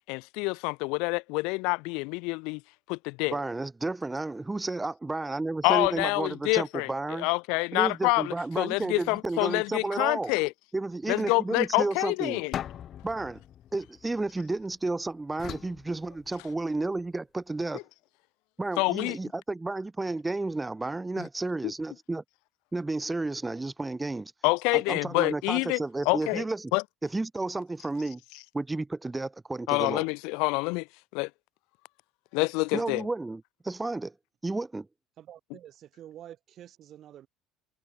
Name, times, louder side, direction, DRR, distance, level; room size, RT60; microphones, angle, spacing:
voice 1, 0.1-2.6 2.9-3.4 5.6-6.9 7.2-10.5 11.1-12.5 18.8-19.2 24.4-25.8 26.1-26.4 26.7-26.8 29.7-30.9 31.1-31.3 32.3-33.1, left 29 dB, 75° left, 0.4 m, -27 dB
voice 2, 3.3-7.3 7.7-10.3 10.7-12.4 13.0-13.4 13.7-17.8 18.6-22.2 22.7-24.3 24.7-26.7 27.0-28.2 28.5-30.1 32.7-34.1 34.4-34.9, right 2 dB, 15° right, 0.5 m, -32 dB
sound 1, 12.5-14.7 15.4-16.8, left 10 dB, 50° left, 1.0 m, -41 dB
voice 3, 35.2-37.3, right 11 dB, 55° right, 6.1 m, -48 dB
supercardioid pair, 80°, 0 cm